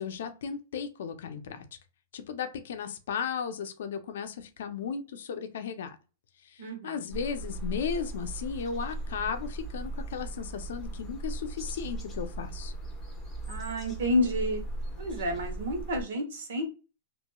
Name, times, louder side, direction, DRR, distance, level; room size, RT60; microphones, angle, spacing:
voice 1, 0.0-1.6 2.1-6.0 6.4-12.7, left 6 dB, 65° left, 8 dB, 0.5 m, -35 dB
voice 2, 6.6-7.2 13.5-14.6 15.0-16.7, left 1 dB, 65° right, 4 dB, 1.0 m, -30 dB
sound 1, 7.1-16.0, right 2 dB, 10° left, 1.1 m, -38 dB
2.9 x 2.5 x 2.2 m, 0.32 s
hypercardioid pair, 160°, 0 cm